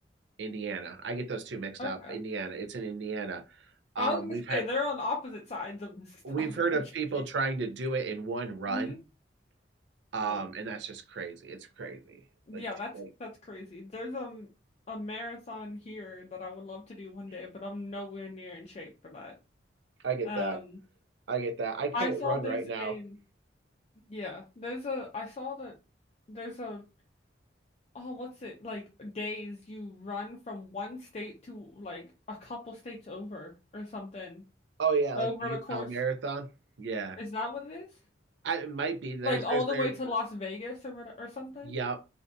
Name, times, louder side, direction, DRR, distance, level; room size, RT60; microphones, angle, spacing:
voice 1, 0.4-3.7 3.9-4.6 6.2-9.0 10.1-12.2 12.5-12.6 12.9-13.1 20.0-20.6 21.3-22.9 34.8-36.5 36.8-37.2 38.4-39.9 41.6-42.0, right 4 dB, 75° right, 0.5 m, -33 dB
voice 2, 1.8-2.2 4.0-6.8 8.7-9.0 10.2-10.5 12.5-12.9 13.2-14.5 14.9-19.3 20.3-20.8 21.9-23.2 24.1-25.7 26.3-26.8 27.9-34.4 35.2-35.9 37.2-37.9 39.2-41.8, left 3 dB, 35° left, 0.4 m, -37 dB
2.5 x 2.5 x 2.2 m
head